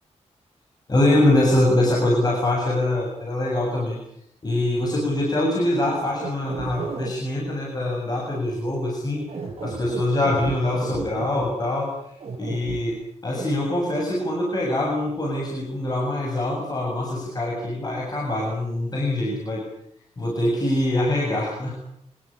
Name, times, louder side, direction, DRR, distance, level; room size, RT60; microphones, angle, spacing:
voice 1, 0.9-4.0 4.4-9.2 9.6-11.9 12.4-13.0 13.2-19.6 20.2-21.7, left 1 dB, 35° left, -1 dB, 7.8 m, -23 dB
sound 1, 5.8-7.1 9.2-11.5 12.2-12.8 13.3-13.4, right 5 dB, 50° right, 8.0 m, -33 dB
27.0 x 20.5 x 8.9 m, 0.74 s
wide cardioid pair, 130°, 12 cm